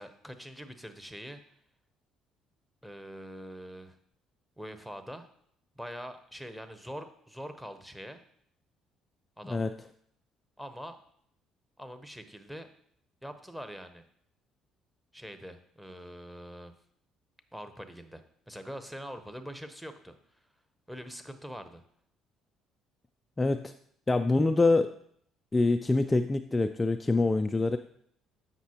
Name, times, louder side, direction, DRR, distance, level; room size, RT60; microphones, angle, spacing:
voice 1, 0.0-1.4 2.8-4.0 4.6-5.3 5.8-8.2 9.4-9.7 10.6-11.0 11.8-12.7 13.2-14.0 15.1-16.7 17.5-20.4 20.9-21.8, equal, ahead, 9 dB, 0.8 m, -44 dB
voice 2, 23.4-23.7 24.1-24.9 25.5-27.8, left 3 dB, 20° left, 6 dB, 0.3 m, -25 dB
7.4 x 5.9 x 2.9 m, 0.66 s
hypercardioid pair, 55°, 0 cm